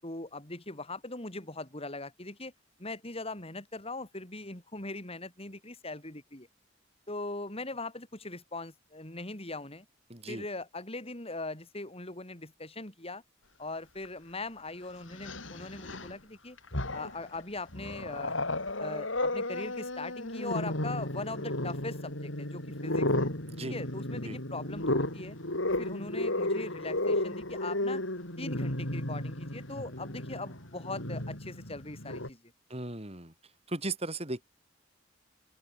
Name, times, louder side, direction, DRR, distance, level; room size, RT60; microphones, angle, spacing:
voice 1, 0.0-2.5 2.8-6.5 7.1-9.9 10.3-13.2 13.6-16.6 16.9-18.4 18.8-23.3 23.6-25.4 25.7-28.0 28.4-32.4, left 2 dB, 30° left, 5.7 m, -40 dB
voice 2, 10.1-10.4 23.6-23.8 24.2-24.4 32.7-33.3 33.7-34.4, right 2 dB, 30° right, 7.2 m, -36 dB
Growling, 14.1-14.2 15.1-16.1 16.6-17.3 17.7-32.3, left 1 dB, 80° left, 8.0 m, -33 dB
open air
head